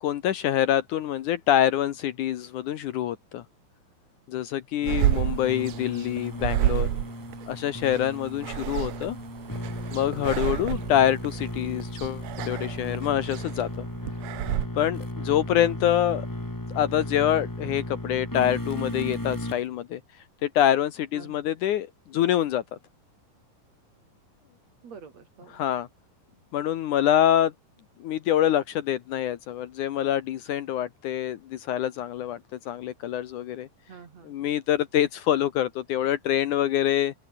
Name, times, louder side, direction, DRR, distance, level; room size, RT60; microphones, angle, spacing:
voice 1, 0.0-3.4 4.3-6.9 7.5-9.2 9.9-13.9 14.7-16.3 16.7-20.0 20.4-22.8 25.5-25.9 26.5-27.5 28.0-32.4 32.7-33.7 34.3-37.1, left 11 dB, 70° left, 2.3 m, -25 dB
sound 1, 4.8-19.6, left 1 dB, 5° left, 2.1 m, -35 dB
sound 2, 4.9-14.7, right 14 dB, 80° right, 1.6 m, -30 dB
voice 2, 10.1-10.6 21.1-21.5 24.8-25.6 33.9-34.4, right 6 dB, 50° right, 3.7 m, -47 dB
open air
omnidirectional pair, 4.2 m